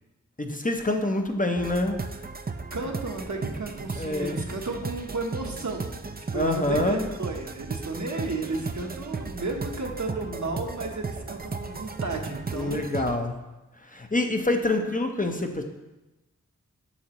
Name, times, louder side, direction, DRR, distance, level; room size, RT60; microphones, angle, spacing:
voice 1, 0.4-2.0 4.0-4.4 6.3-7.1 12.5-13.4 13.8-15.6, left 1 dB, 25° left, 4 dB, 0.7 m, -26 dB
sound 1, 1.6-13.2, right 4 dB, 30° right, 0.4 m, -36 dB
voice 2, 2.7-12.8, right 3 dB, 65° right, 2 dB, 1.0 m, -33 dB
8.3 x 6.5 x 3.0 m, 1.0 s
wide cardioid pair, 45°, 31 cm